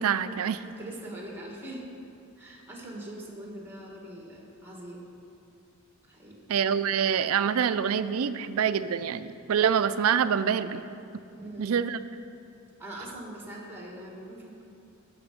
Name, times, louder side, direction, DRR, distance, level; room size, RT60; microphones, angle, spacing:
voice 1, 0.0-0.6 6.5-10.8 11.6-12.0, right 7 dB, 90° right, 13 dB, 0.4 m, -26 dB
voice 2, 0.6-1.8 2.4-5.2 6.1-6.3 11.3-11.8 12.8-14.6, right 1 dB, 10° right, -2 dB, 1.7 m, -42 dB
13.0 x 5.8 x 5.1 m, 2.7 s
head